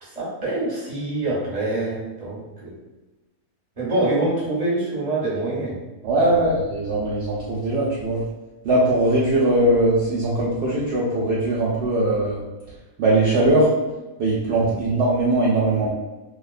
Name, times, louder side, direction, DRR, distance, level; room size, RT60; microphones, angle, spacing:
voice 1, 0.0-2.7 3.8-5.7 6.3-6.5 14.6-14.7, right 2 dB, 30° right, -7 dB, 0.8 m, -25 dB
voice 2, 6.0-8.2 8.6-12.4 13.0-13.7 14.2-15.9, right 1 dB, 70° right, -6 dB, 0.6 m, -20 dB
2.6 x 2.2 x 2.4 m, 1.1 s
omnidirectional pair, 1.6 m